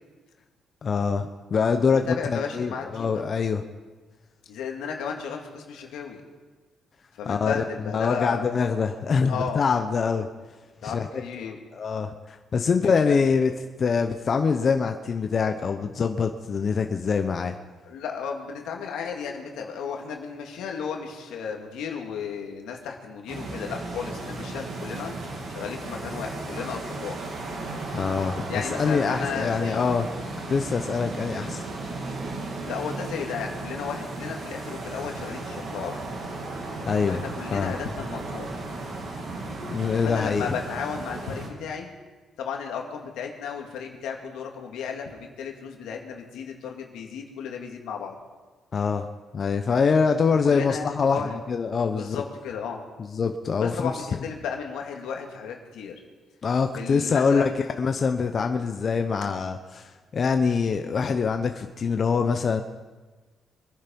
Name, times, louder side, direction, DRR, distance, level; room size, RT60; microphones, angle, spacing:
voice 1, 0.8-3.6 7.3-7.6 7.9-10.3 10.8-11.2 11.7-13.5 13.8-17.5 27.9-30.1 30.5-31.7 36.8-37.2 37.5-37.7 39.6-40.5 48.7-49.1 49.3-52.2 53.0-53.9 56.4-62.6, left 5 dB, 45° left, 6 dB, 0.9 m, -24 dB
voice 2, 1.9-3.2 4.5-6.2 7.2-8.5 9.2-9.7 10.8-11.6 12.8-13.3 17.8-25.1 25.5-27.2 28.5-29.9 32.6-36.0 37.1-38.6 40.0-41.9 42.4-48.1 50.4-51.3 51.9-52.8 53.6-56.0 56.8-57.6, left 6 dB, 85° left, 2 dB, 2.3 m, -34 dB
sound 1, 23.3-41.5, right 2 dB, 65° right, 3.4 m, -35 dB
23.5 x 10.5 x 5.4 m, 1.3 s
cardioid pair, 90°, 0 cm